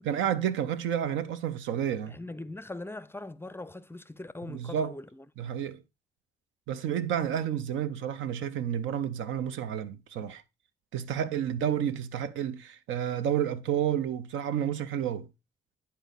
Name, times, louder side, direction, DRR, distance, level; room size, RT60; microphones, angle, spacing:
voice 1, 0.1-2.2 4.5-4.9 5.4-5.8 6.7-10.4 10.9-15.3, right 9 dB, 75° right, 0.6 m, -30 dB
voice 2, 2.1-5.2 5.5-5.6, left 2 dB, 10° left, 0.5 m, -41 dB
10.0 x 4.2 x 3.9 m
hypercardioid pair, 50°, 20 cm